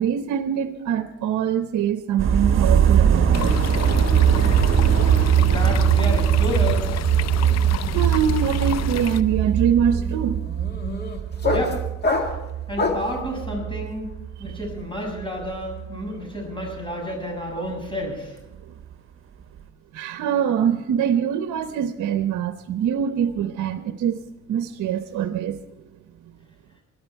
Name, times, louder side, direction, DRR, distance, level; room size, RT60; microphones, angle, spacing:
voice 1, 0.0-3.6 7.9-10.4 14.4-14.6 18.7-18.8 19.9-24.2 24.5-25.6, right 8 dB, 70° right, 0.8 m, -24 dB
sound 1, 2.2-14.8 15.1-16.0 16.6-16.7, right 8 dB, 45° right, 1.4 m, -21 dB
sound 2, 3.3-9.2, left 10 dB, 60° left, 0.7 m, -31 dB
voice 2, 5.4-7.0 11.5-11.8 12.7-14.1 14.4-18.4, equal, 15° left, 6.7 m, -30 dB
sound 3, 7.1-13.2, left 3 dB, 35° left, 2.1 m, -28 dB
21.5 x 11.5 x 4.5 m
cardioid pair, 90°, 30 cm